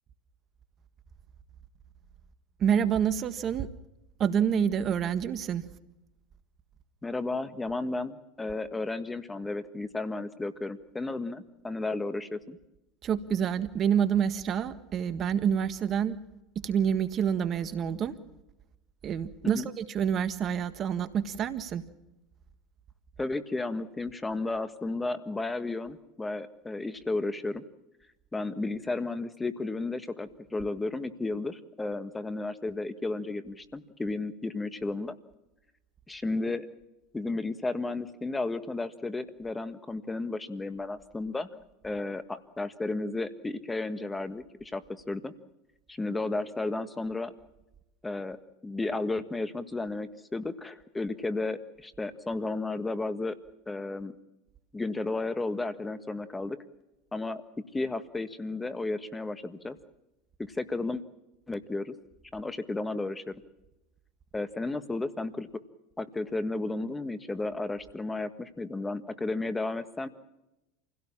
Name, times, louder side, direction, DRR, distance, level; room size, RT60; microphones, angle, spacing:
voice 1, 2.6-3.7 4.2-5.6 13.0-16.2 16.6-18.1 19.0-21.8, right 8 dB, 40° right, 12 dB, 1.6 m, -27 dB
voice 2, 7.0-12.6 19.4-19.7 23.2-27.6 28.3-35.2 36.1-36.7 37.1-41.5 41.8-45.3 45.9-47.3 48.0-53.3 53.7-54.1 54.7-56.6 57.1-57.4 57.7-59.8 60.4-61.0 61.5-61.9 62.3-63.3 64.3-65.5 66.0-70.1, left 2 dB, 15° left, 12 dB, 1.5 m, -33 dB
27.5 x 17.0 x 7.4 m, 0.93 s
hypercardioid pair, 95°, 0 cm